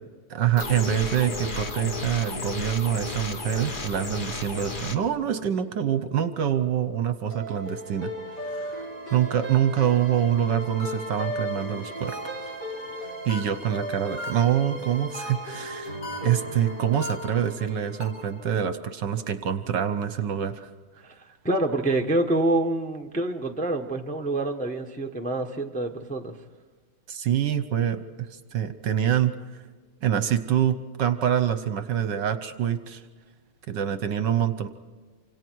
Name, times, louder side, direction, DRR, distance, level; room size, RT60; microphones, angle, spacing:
voice 1, 0.3-8.1 8.4-12.2 13.2-20.7 27.1-29.3 30.0-33.0 33.7-34.7, right 9 dB, 65° right, 11 dB, 1.3 m, -26 dB
sound 1, 0.6-5.0, left 3 dB, 35° left, 0.9 m, -33 dB
sound 2, 7.3-18.5, right 1 dB, 50° left, 4.9 m, -36 dB
sound 3, 10.8-11.3 12.1-12.5 13.3-13.8 14.2-14.7 15.1-15.6 16.0-16.5 17.0-17.5 18.0-18.4, left 2 dB, 85° left, 6.3 m, -38 dB
voice 2, 21.0-26.4, right 2 dB, 5° left, 3 dB, 0.7 m, -27 dB
28.0 x 26.0 x 4.7 m, 1.4 s
omnidirectional pair, 2.4 m